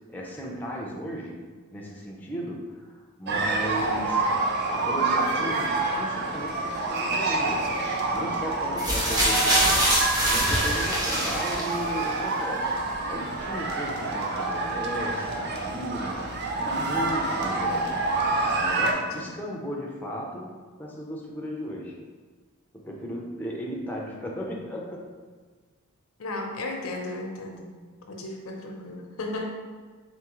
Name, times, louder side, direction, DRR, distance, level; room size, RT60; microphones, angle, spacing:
voice 1, 0.1-1.4 1.7-4.3 4.7-7.7 8.1-18.0 18.6-22.0 22.7-25.1, equal, 10° left, -2 dB, 0.5 m, -36 dB
sound 1, 3.3-18.9, right 3 dB, 50° right, 0.5 m, -27 dB
sound 2, 8.8-12.0 12.9-13.0, equal, 20° right, 0.8 m, -24 dB
voice 2, 26.2-27.7 28.1-29.4, left 2 dB, 80° left, 2 dB, 0.6 m, -35 dB
3.7 x 3.6 x 3.0 m, 1.5 s
head